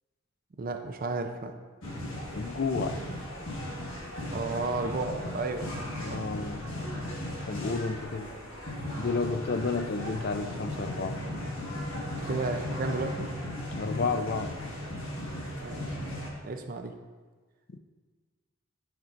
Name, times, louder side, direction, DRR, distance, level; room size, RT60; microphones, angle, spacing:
voice 1, 0.6-1.5 4.3-6.2 12.2-13.3 15.6-16.0 16.4-17.0, right 3 dB, 40° right, 6 dB, 0.4 m, -33 dB
sound 1, 1.8-16.3, left 1 dB, 75° left, 1.4 m, -36 dB
voice 2, 2.3-3.0 6.0-6.7 7.5-8.3 9.0-11.2 13.8-14.5 17.7-17.8, left 4 dB, 50° left, 8 dB, 0.4 m, -31 dB
11.0 x 4.5 x 2.5 m, 1.4 s
head